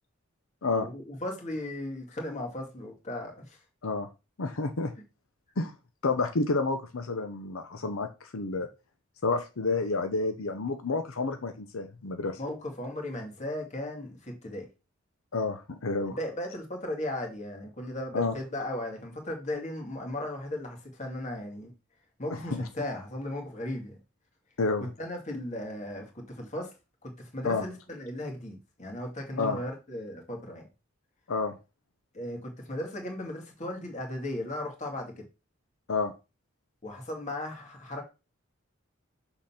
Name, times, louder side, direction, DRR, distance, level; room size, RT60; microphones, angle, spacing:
voice 1, 0.8-3.6 12.4-14.7 16.0-21.7 22.2-24.0 24.8-26.7 27.0-30.7 32.1-35.3 36.8-38.0, left 1 dB, 35° left, 2.2 m, -36 dB
voice 2, 4.4-4.9 5.6-5.7 6.0-8.7 9.2-12.4 15.3-16.2 18.1-18.3 22.3-22.7 24.6-24.9 27.4-27.6 29.4-29.6 31.3-31.6 35.9-36.1, left 3 dB, 85° left, 0.8 m, -29 dB
6.4 x 4.0 x 5.7 m
head